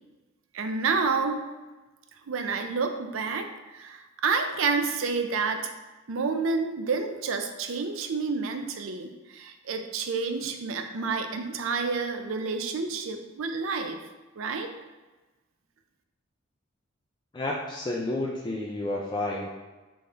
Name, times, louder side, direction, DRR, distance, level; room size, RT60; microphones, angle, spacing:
voice 1, 0.5-1.4 2.3-5.7 6.1-14.0 14.4-14.7, right 4 dB, 80° right, 6 dB, 0.5 m, -29 dB
voice 2, 17.3-19.5, left 2 dB, 20° left, -3 dB, 0.4 m, -30 dB
4.0 x 3.6 x 3.3 m, 1.2 s
head